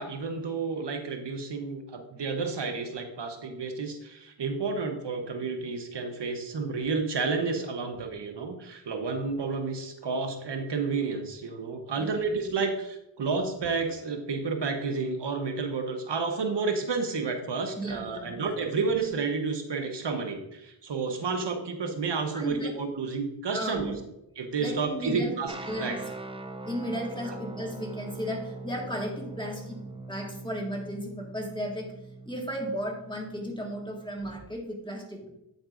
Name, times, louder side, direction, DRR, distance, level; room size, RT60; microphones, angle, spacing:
voice 1, 0.0-24.0 24.3-26.0 27.3-27.4, right 4 dB, 65° right, 4 dB, 1.0 m, -31 dB
voice 2, 17.8-18.4 22.3-22.7 23.5-24.0 24.6-25.3 25.7-26.0 26.7-31.9 32.3-35.3, equal, 10° left, -1 dB, 1.8 m, -35 dB
sound 1, 25.5-34.4, right 2 dB, 15° right, 0.4 m, -42 dB
8.7 x 7.8 x 2.5 m, 0.85 s
wide cardioid pair, 90°, 46 cm